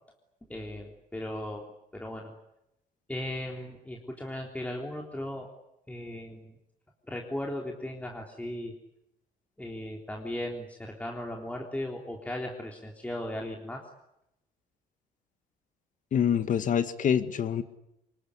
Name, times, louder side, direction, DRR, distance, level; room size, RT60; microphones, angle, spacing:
voice 1, 0.5-1.6 1.9-2.3 3.1-5.5 5.9-6.5 7.1-8.7 9.6-13.8, left 1 dB, 10° left, 0 dB, 3.6 m, -37 dB
voice 2, 16.1-17.6, left 8 dB, 50° left, 11 dB, 1.9 m, -26 dB
25.5 x 22.5 x 9.9 m, 0.83 s
cardioid pair, 110°, 17 cm